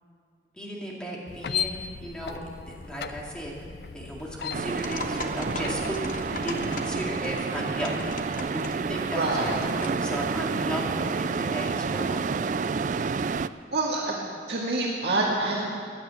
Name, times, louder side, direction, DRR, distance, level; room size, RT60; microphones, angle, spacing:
voice 1, 0.6-3.5 3.9-12.2, equal, 5° left, -3 dB, 2.4 m, -35 dB
sound 1, 1.3-6.8, left 7 dB, 70° left, 0.5 m, -37 dB
sound 2, 4.5-13.5, right 4 dB, 45° right, 0.3 m, -29 dB
sound 3, 4.7-10.1, left 3 dB, 50° left, 1.1 m, -41 dB
voice 2, 9.1-9.5 13.7-14.2 14.5-15.7, right 2 dB, 75° right, -3 dB, 1.8 m, -26 dB
15.5 x 10.5 x 8.4 m, 2.3 s
head